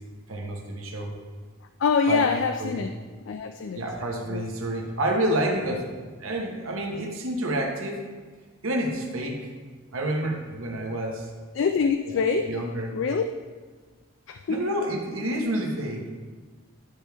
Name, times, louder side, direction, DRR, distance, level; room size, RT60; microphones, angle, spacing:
voice 1, 0.3-1.1 2.1-2.2 2.6-2.9 3.7-5.8 6.2-8.0 8.6-9.5 9.9-11.3 12.5-13.0 14.5-16.1, right 1 dB, 80° right, 1 dB, 1.2 m, -28 dB
voice 2, 1.8-2.9 3.3-3.9 4.3-4.4 5.7-5.8 11.5-12.6 12.9-13.2 14.3-14.6, left 5 dB, 60° left, 7 dB, 0.3 m, -25 dB
11.5 x 4.5 x 3.5 m, 1.4 s
head